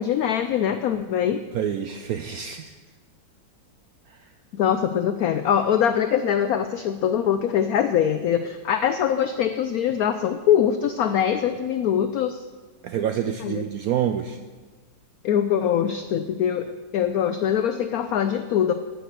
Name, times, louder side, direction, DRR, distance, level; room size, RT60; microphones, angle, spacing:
voice 1, 0.0-1.4 4.5-12.4 13.4-13.6 15.2-18.7, left 9 dB, 80° left, 9 dB, 0.8 m, -23 dB
voice 2, 1.5-2.8 4.1-4.3 12.8-14.4, right 9 dB, 85° right, 7 dB, 0.8 m, -27 dB
9.4 x 6.6 x 7.9 m, 1.3 s
omnidirectional pair, 2.1 m